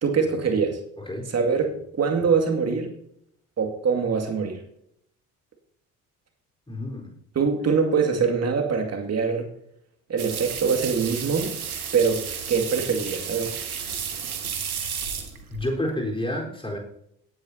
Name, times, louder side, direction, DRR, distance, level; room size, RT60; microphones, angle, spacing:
voice 1, 0.0-0.8 1.3-2.9 3.6-4.6 7.4-9.5 10.1-11.6 11.9-13.6, right 5 dB, 35° right, 3 dB, 2.3 m, -23 dB
voice 2, 1.0-1.3 6.7-7.1 15.5-16.8, left 1 dB, 10° left, -1 dB, 4.1 m, -29 dB
sound 1, 10.2-15.7, right 7 dB, 85° right, 1.2 m, -32 dB
18.0 x 9.7 x 2.8 m, 0.72 s
figure-of-eight pair, 50°, 43 cm